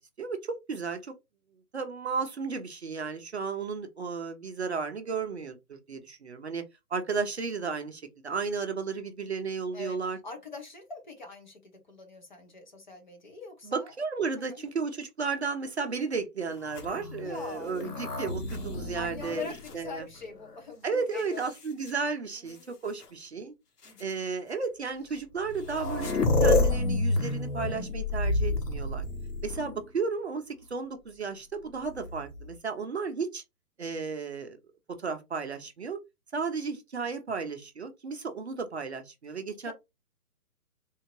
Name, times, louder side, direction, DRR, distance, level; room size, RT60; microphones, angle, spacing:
voice 1, 0.2-1.1 1.7-6.6 6.9-10.2 13.7-20.1 20.8-22.6 22.8-23.5 24.0-26.1 26.4-29.0 29.4-33.4 33.8-34.6 34.9-36.0 36.3-39.7, right 5 dB, 45° right, 0.5 m, -33 dB
voice 2, 9.7-13.9 14.5-14.6 17.2-18.2 18.9-21.4 22.3-22.7 23.8-24.1 39.6-39.7, left 4 dB, 30° left, 0.8 m, -43 dB
sound 1, 16.6-20.5 21.2-21.9 23.0-23.1 23.8-24.0 25.2-25.3 25.4-29.9 31.8-32.5, left 2 dB, 85° left, 1.4 m, -30 dB
3.5 x 2.7 x 3.0 m
hypercardioid pair, 170°, 46 cm